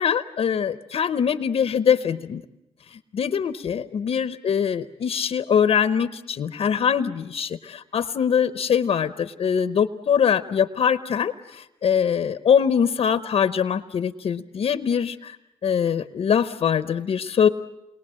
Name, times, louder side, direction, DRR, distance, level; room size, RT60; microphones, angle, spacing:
voice 1, 0.0-2.4 2.9-15.4 15.6-17.5, left 7 dB, 50° left, 11 dB, 0.8 m, -23 dB
29.0 x 21.5 x 7.6 m, 0.96 s
cardioid pair, 105°, 12 cm